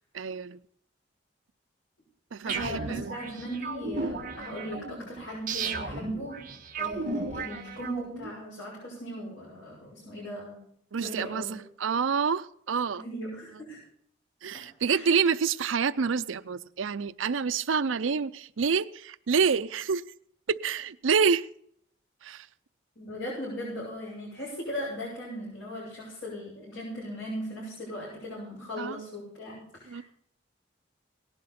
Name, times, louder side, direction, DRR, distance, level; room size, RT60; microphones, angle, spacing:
voice 1, 0.1-0.6 2.3-3.2 10.9-13.0 14.4-20.0 20.5-21.5 22.2-22.5 28.8-29.0 29.9-30.0, right 6 dB, 90° right, 0.5 m, -28 dB
voice 2, 2.4-6.4 6.8-10.6 11.0-11.6 13.0-13.8 14.5-15.0 23.0-30.0, equal, 90° left, 7.8 m, -38 dB
sound 1, 2.5-8.3, right 4 dB, 45° right, 1.5 m, -35 dB
18.5 x 11.5 x 4.3 m
head